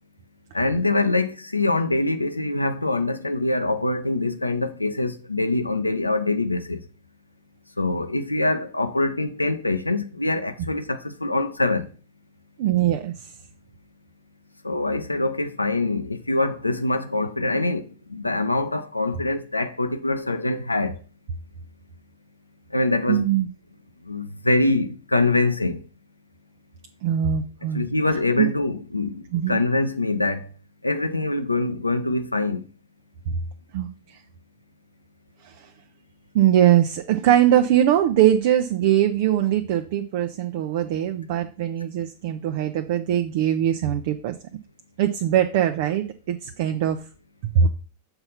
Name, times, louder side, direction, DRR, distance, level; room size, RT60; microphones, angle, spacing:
voice 1, 0.5-6.8 7.8-11.9 14.6-21.0 22.7-23.3 24.0-25.8 27.7-30.5 30.8-32.7, left 2 dB, 85° left, 0.7 m, -24 dB
voice 2, 12.6-13.3 23.1-23.5 27.0-27.8 28.4-28.5 29.3-29.6 33.3-33.4 33.7-34.2 35.4-35.7 36.3-44.3 45.0-47.0 47.4-47.7, right 10 dB, 50° right, 0.6 m, -21 dB
6.8 x 4.2 x 5.6 m
figure-of-eight pair, 90°, 0 cm